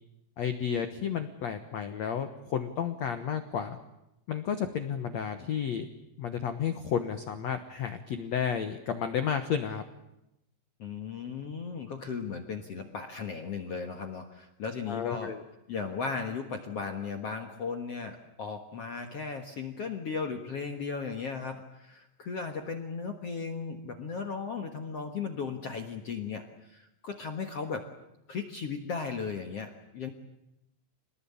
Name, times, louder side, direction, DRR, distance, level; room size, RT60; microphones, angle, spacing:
voice 1, 0.4-3.8 4.3-5.9 6.2-9.8 14.9-15.4, left 8 dB, 85° left, 8 dB, 1.5 m, -32 dB
voice 2, 10.8-15.3 15.7-27.9 28.3-30.1, left 5 dB, 65° left, 5 dB, 1.5 m, -36 dB
27.0 x 20.0 x 8.7 m, 0.89 s
omnidirectional pair, 5.1 m